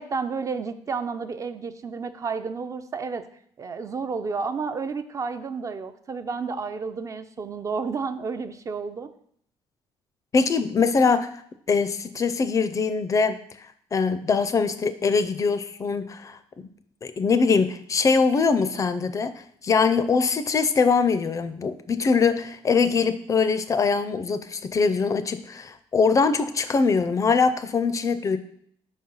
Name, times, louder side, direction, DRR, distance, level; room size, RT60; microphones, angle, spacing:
voice 1, 0.0-3.2 3.6-9.1, right 5 dB, 30° right, 10 dB, 0.4 m, -31 dB
voice 2, 10.3-11.4 11.7-13.4 13.9-16.7 17.0-28.4, left 5 dB, 30° left, 11 dB, 0.4 m, -22 dB
5.0 x 3.9 x 5.5 m, 0.65 s
cardioid pair, 125°, 11 cm